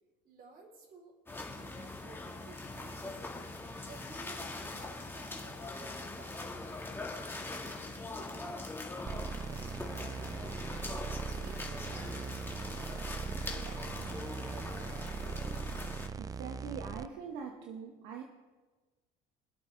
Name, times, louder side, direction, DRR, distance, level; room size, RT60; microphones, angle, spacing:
voice 1, 0.2-3.4 3.9-6.7 7.0-10.9 11.4-13.1 13.4-15.4, right 3 dB, 50° right, 1 dB, 4.1 m, -55 dB
sound 1, 1.3-16.1, left 2 dB, 10° left, 2.0 m, -42 dB
sound 2, 9.1-17.1, right 5 dB, 20° right, 0.3 m, -40 dB
voice 2, 16.2-18.2, right 6 dB, 70° right, 3 dB, 1.3 m, -43 dB
24.5 x 8.2 x 3.5 m, 1.3 s
supercardioid pair, 90°, 20 cm